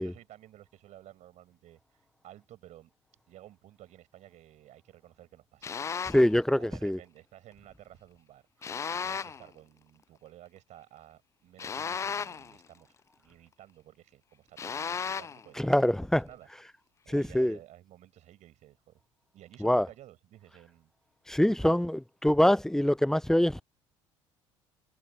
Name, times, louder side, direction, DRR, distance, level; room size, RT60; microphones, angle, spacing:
voice 1, 0.0-2.9 3.3-5.9 6.6-16.5 17.0-19.0 19.3-20.9 21.4-21.8, right 13 dB, 50° right, 6.4 m, -54 dB
sound 1, 5.6-6.3 8.6-9.5 11.6-12.6 14.6-15.5, left 6 dB, 20° left, 0.3 m, -35 dB
voice 2, 6.1-7.0 15.6-16.2 17.1-17.6 19.6-19.9 21.3-23.6, left 1 dB, 5° left, 0.7 m, -24 dB
figure-of-eight pair, 55°, 16 cm